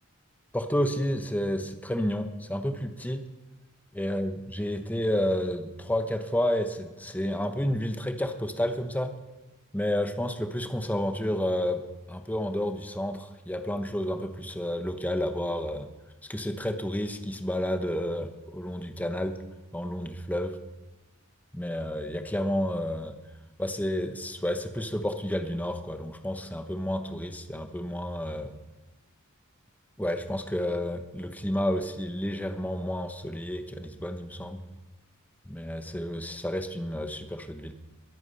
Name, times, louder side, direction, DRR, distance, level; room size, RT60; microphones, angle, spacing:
voice 1, 0.5-3.2 3.9-9.1 9.7-11.8 12.1-15.9 16.3-19.4 19.7-20.6 21.5-23.2 23.6-28.5 30.0-34.6 35.4-37.7, left 1 dB, 5° left, 7 dB, 1.0 m, -30 dB
21.5 x 8.7 x 5.5 m, 1.1 s
head